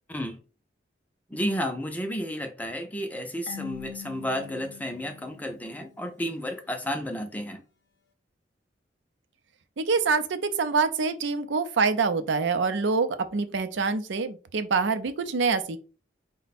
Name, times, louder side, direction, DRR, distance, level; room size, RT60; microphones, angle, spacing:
voice 1, 1.3-7.6, equal, 10° left, 0.5 m, -32 dB
Marimba xylophone / Wood, 3.5-6.2, left 9 dB, 65° left, 0.7 m, -44 dB
voice 2, 9.8-15.8, right 4 dB, 75° right, 0.5 m, -25 dB
4.4 x 2.2 x 4.1 m
head